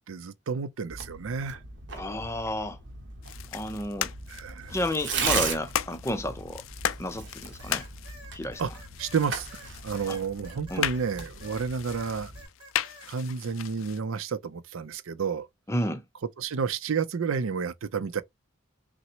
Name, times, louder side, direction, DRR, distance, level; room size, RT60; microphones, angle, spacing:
voice 1, 0.1-1.6 4.3-4.8 8.6-8.7 9.0-12.3 13.1-15.5 16.4-18.2, right 6 dB, 80° right, 0.5 m, -31 dB
Tearing, 0.9-12.5, right 5 dB, 60° right, 1.0 m, -37 dB
voice 2, 1.9-2.8 3.5-4.1 4.7-6.6 7.0-7.9 8.3-8.6 10.1-10.2 10.7-10.9 15.7-16.0, left 1 dB, 15° left, 0.5 m, -31 dB
sound 1, 3.2-14.0, left 11 dB, 75° left, 0.3 m, -37 dB
sound 2, 7.6-11.6 11.9-13.1, right 1 dB, 25° right, 1.9 m, -50 dB
5.9 x 2.0 x 2.8 m
head